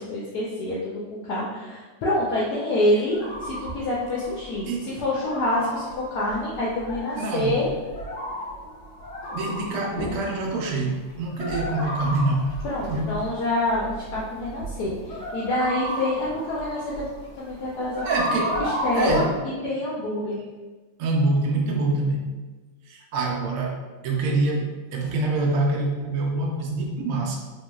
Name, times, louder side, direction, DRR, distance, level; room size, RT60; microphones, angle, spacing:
voice 1, 0.0-7.7 12.6-17.1 17.4-18.3 18.6-19.3 19.6-20.4, left 1 dB, 70° left, -6 dB, 1.0 m, -27 dB
sound 1, 3.0-19.3, equal, 45° left, 1.3 m, -34 dB
voice 2, 7.2-7.5 9.3-12.5 12.9-13.2 18.0-18.6 18.9-19.3 21.0-22.3 22.9-27.4, right 2 dB, 75° right, 0 dB, 0.8 m, -25 dB
3.0 x 2.8 x 2.2 m, 1.3 s
omnidirectional pair, 2.0 m